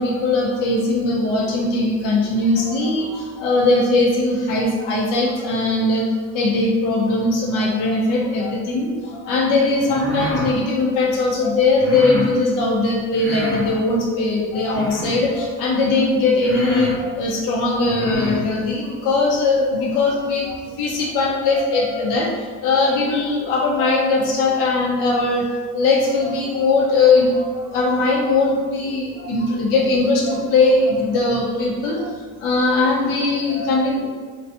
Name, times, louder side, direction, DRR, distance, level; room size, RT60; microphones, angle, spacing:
voice 1, 0.0-25.4 25.7-32.1 32.4-34.1, left 3 dB, 80° left, -2 dB, 0.7 m, -20 dB
sound 1, 9.8-10.5 11.8-12.3 13.1-13.7 14.7-15.3 16.0-16.1 16.4-17.0 17.8-18.4, left 1 dB, 10° left, 0.8 m, -28 dB
2.6 x 2.3 x 2.5 m, 1.5 s
supercardioid pair, 90°, 31 cm